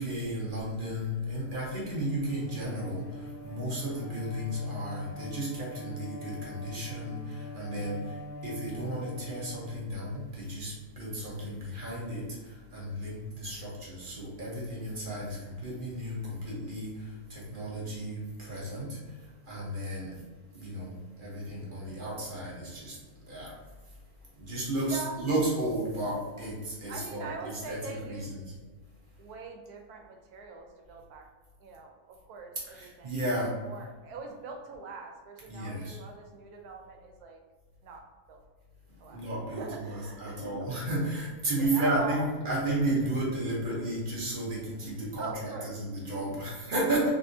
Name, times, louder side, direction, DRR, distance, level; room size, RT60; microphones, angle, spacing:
voice 1, 0.0-19.1 19.5-20.2 20.5-23.0 23.2-23.5 24.4-28.5 32.7-33.6 35.5-36.0 39.1-47.1, right 1 dB, 40° right, -5 dB, 1.0 m, -33 dB
Bowed string instrument, 1.9-10.3, equal, 65° left, 0.8 m, -44 dB
voice 2, 24.9-25.2 26.9-28.3 29.2-31.3 31.6-33.1 33.6-37.4 37.8-38.0 38.3-38.4 39.0-39.2 39.5-40.7 41.6-42.3 45.2-45.8, right 4 dB, 90° right, 2 dB, 1.1 m, -42 dB
3.6 x 2.6 x 2.6 m, 1.3 s
omnidirectional pair, 1.6 m